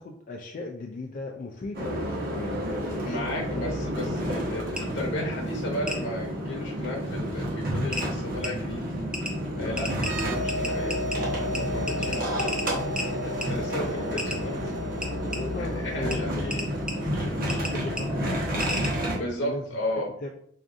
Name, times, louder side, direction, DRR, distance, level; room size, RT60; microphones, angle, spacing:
voice 1, 0.0-3.3 4.0-4.7 9.6-9.8 15.3-16.6 16.9-19.7 20.2-20.3, left 2 dB, 45° left, 2 dB, 0.3 m, -38 dB
sound 1, 1.7-19.2, equal, 50° right, 1.0 m, -30 dB
voice 2, 3.0-8.9 9.5-12.2 13.1-14.6 15.6-16.7 19.2-20.1, left 1 dB, 75° left, -1 dB, 0.8 m, -34 dB
sound 2, 4.8-4.9 5.9-6.0 7.3-7.4 7.9-8.1 8.4-8.5 9.1-9.3 9.8-11.2 11.5-11.6 11.9-13.1 13.4-13.5 14.2-14.4 15.0-15.4 16.1-16.2 16.5-16.9 17.5-17.7 18.0-18.1 18.6-18.9, left 1 dB, 5° right, 0.5 m, -32 dB
sound 3, 10.0-17.5, equal, 85° right, 0.3 m, -36 dB
4.7 x 2.4 x 2.5 m, 0.63 s
head